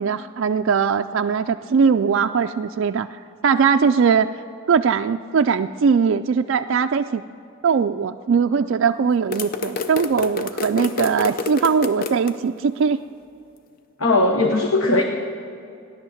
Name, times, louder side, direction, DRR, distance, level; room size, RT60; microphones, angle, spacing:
voice 1, 0.0-3.1 3.4-4.3 4.7-7.2 7.6-13.0, right 6 dB, 55° right, 6 dB, 0.3 m, -20 dB
sound 1, 9.3-12.3, left 4 dB, 40° left, 0.7 m, -28 dB
voice 2, 14.0-15.0, left 2 dB, 65° left, 3 dB, 1.0 m, -18 dB
16.0 x 11.0 x 7.1 m, 2.6 s
head